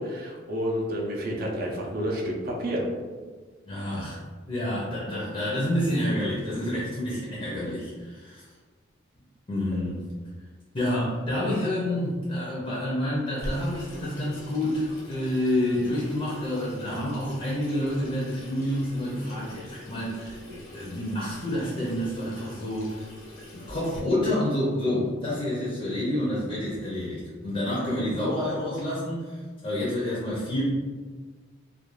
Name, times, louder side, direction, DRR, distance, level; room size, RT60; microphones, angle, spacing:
voice 1, 0.0-2.9, equal, 45° right, -2 dB, 0.5 m, -30 dB
voice 2, 3.7-4.2 4.5-8.5 9.5-10.1 10.7-23.1 23.4-30.6, left 1 dB, 30° left, -6 dB, 0.5 m, -28 dB
Water tap faucet / Sink (filling or washing), 13.4-24.0, left 1 dB, 90° left, 0.8 m, -43 dB
2.4 x 2.3 x 3.0 m, 1.4 s
head